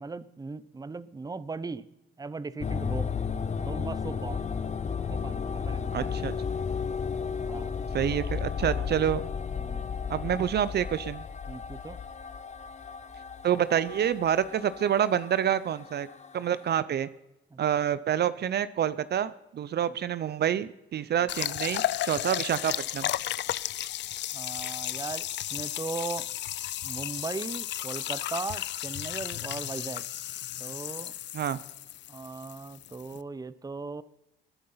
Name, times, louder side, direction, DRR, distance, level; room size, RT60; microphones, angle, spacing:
voice 1, 0.0-1.8 2.2-3.1 3.6-4.6 5.1-6.1 7.4-7.7 8.6-8.9 9.5-9.8 11.5-12.0 17.5-17.6 24.3-26.3 26.8-30.0 30.6-31.1 32.1-34.0, right 4 dB, 20° right, 17 dB, 0.8 m, -38 dB
sound 1, 2.6-16.7, left 6 dB, 35° left, 0.9 m, -34 dB
voice 2, 5.9-6.3 7.9-9.2 10.1-11.2 13.4-16.1 16.3-17.1 17.6-23.1 31.3-31.6, right 9 dB, 55° right, 16 dB, 0.7 m, -27 dB
sound 2, 21.3-33.2, left 13 dB, 65° left, 0.5 m, -34 dB
20.5 x 11.0 x 5.7 m, 0.91 s
cardioid pair, 90°, 20 cm